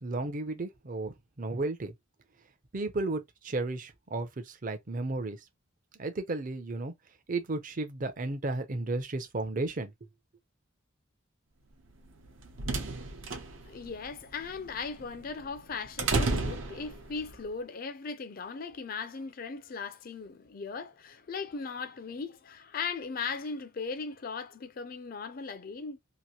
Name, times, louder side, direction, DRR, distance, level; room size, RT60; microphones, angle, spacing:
voice 1, 0.0-1.9 2.7-5.4 6.0-6.9 7.3-9.9, right 2 dB, 40° right, 0.6 m, -33 dB
sound 1, 12.1-17.4, right 3 dB, 75° right, 0.7 m, -33 dB
voice 2, 13.6-26.0, left 5 dB, 45° left, 0.4 m, -38 dB
2.9 x 2.5 x 2.8 m
head